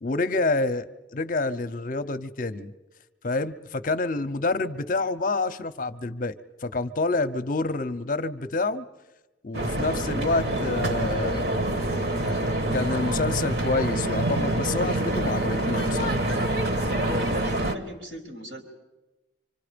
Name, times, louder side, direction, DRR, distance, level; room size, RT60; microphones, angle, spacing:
voice 1, 0.0-2.7 3.2-8.9 9.4-11.5 12.7-16.2, left 3 dB, 45° left, 10 dB, 0.7 m, -28 dB
sound 1, 9.5-17.7, right 1 dB, 55° right, 1.5 m, -26 dB
voice 2, 17.1-18.6, right 1 dB, 80° right, 1 dB, 4.2 m, -39 dB
25.5 x 25.5 x 5.1 m, 1.1 s
head